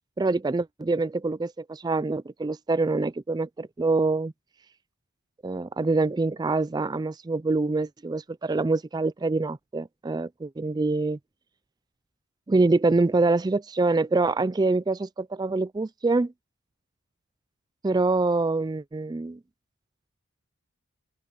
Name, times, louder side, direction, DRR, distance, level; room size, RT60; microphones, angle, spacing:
voice 1, 0.2-4.3 5.4-11.2 12.5-16.3 17.8-19.4, right 3 dB, 20° right, 0.3 m, -25 dB
open air
head